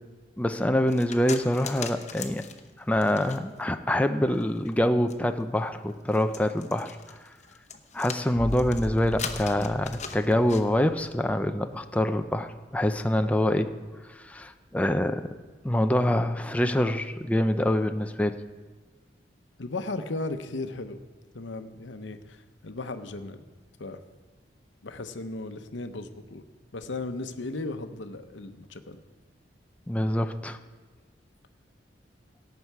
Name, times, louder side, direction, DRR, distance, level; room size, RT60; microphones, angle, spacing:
voice 1, 0.4-2.4 2.9-7.0 7.9-13.7 14.1-15.2 15.6-18.4 29.9-30.6, left 1 dB, 10° left, 7 dB, 0.4 m, -25 dB
sound 1, 0.9-3.7 4.3-10.6, left 6 dB, 40° left, 0.9 m, -40 dB
sound 2, 14.2-14.9, equal, 15° right, 1.3 m, -41 dB
voice 2, 19.6-21.0 21.3-23.4 23.8-24.0 24.8-26.4 26.7-29.0, left 2 dB, 80° left, 8 dB, 0.9 m, -36 dB
17.5 x 7.9 x 4.7 m, 1.4 s
head